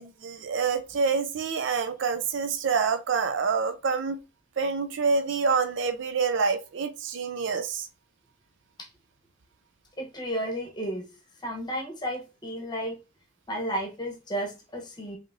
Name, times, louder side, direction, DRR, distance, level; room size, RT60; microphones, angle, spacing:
voice 1, 0.0-4.2 4.6-7.9, right 5 dB, 60° right, 0.4 m, -27 dB
voice 2, 10.0-11.1 11.4-13.0 13.5-15.2, equal, 20° left, 0.9 m, -33 dB
5.3 x 2.9 x 2.6 m
head